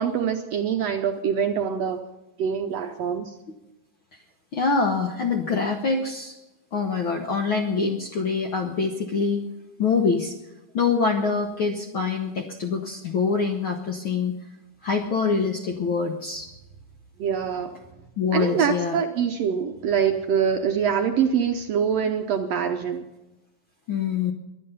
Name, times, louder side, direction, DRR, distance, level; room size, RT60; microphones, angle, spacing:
voice 1, 0.0-2.0 2.4-3.3 17.2-17.7 18.3-23.1, right 7 dB, 70° right, 5 dB, 1.6 m, -24 dB
voice 2, 4.5-6.3 6.7-9.4 9.8-10.3 10.7-14.3 14.8-16.5 18.2-19.0 23.9-24.3, left 5 dB, 65° left, 3 dB, 1.3 m, -25 dB
23.0 x 9.4 x 5.6 m, 0.99 s
omnidirectional pair, 3.7 m